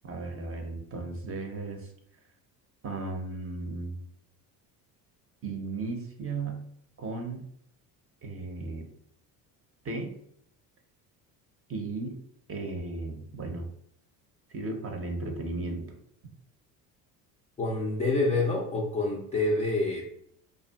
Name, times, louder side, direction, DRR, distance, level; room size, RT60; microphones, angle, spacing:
voice 1, 0.0-1.9 2.8-4.0 5.4-6.7 7.0-7.5 8.2-8.9 9.8-10.1 11.7-12.2 12.5-13.7 14.5-15.9, right 3 dB, 30° right, 4 dB, 0.6 m, -35 dB
voice 2, 17.6-20.1, left 2 dB, 15° left, -3 dB, 0.3 m, -27 dB
2.7 x 2.3 x 2.2 m, 0.69 s
hypercardioid pair, 65°, 49 cm